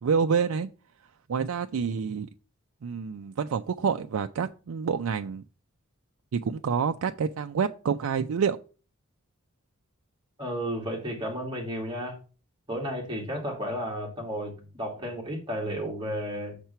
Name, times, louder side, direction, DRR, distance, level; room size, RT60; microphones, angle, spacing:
voice 1, 0.0-0.7 1.3-2.3 2.8-5.4 6.3-8.6, right 6 dB, 75° right, 7 dB, 0.4 m, -27 dB
voice 2, 10.4-12.2 12.7-16.6, equal, 20° right, 0 dB, 2.4 m, -33 dB
6.6 x 4.4 x 5.6 m, 0.35 s
head